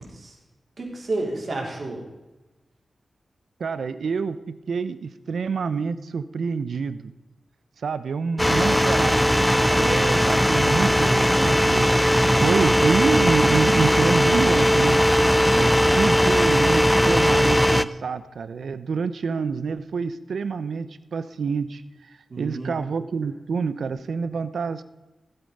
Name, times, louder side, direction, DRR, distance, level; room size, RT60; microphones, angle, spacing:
voice 1, 0.8-2.0 15.2-15.8 22.3-22.8, right 2 dB, 50° right, -2 dB, 4.1 m, -32 dB
voice 2, 3.6-7.1 7.8-15.0 15.6-15.7 15.9-24.8, right 5 dB, 85° right, 14 dB, 0.7 m, -27 dB
sound 1, 8.4-17.8, equal, 5° left, 0.5 m, -19 dB
17.5 x 8.1 x 5.4 m, 1.1 s
wide cardioid pair, 95°, 0 cm